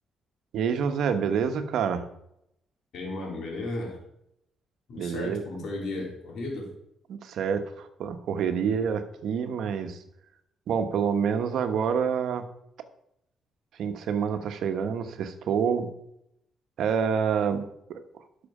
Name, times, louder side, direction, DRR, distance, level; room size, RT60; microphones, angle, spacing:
voice 1, 0.5-2.0 4.9-5.4 7.1-10.0 10.7-12.4 13.8-15.9 16.8-17.6 17.9-18.0, right 7 dB, 75° right, 8 dB, 1.2 m, -27 dB
voice 2, 2.9-4.0 4.9-6.7, left 2 dB, 65° left, -1 dB, 3.7 m, -34 dB
12.0 x 6.3 x 5.0 m, 0.78 s
cardioid pair, 90°, 0 cm